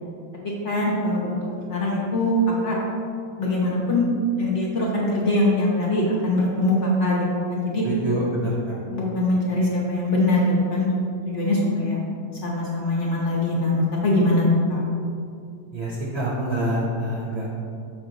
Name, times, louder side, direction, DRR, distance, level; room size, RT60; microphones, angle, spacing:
voice 1, 0.6-1.3 1.7-2.8 3.4-4.1 4.4-7.9 8.9-10.9 11.3-12.0 12.4-14.8, left 1 dB, 50° left, -4 dB, 1.1 m, -22 dB
voice 2, 7.8-8.8 15.7-17.5, right 1 dB, 55° right, -4 dB, 0.7 m, -26 dB
6.4 x 4.3 x 3.9 m, 2.5 s
omnidirectional pair, 1.9 m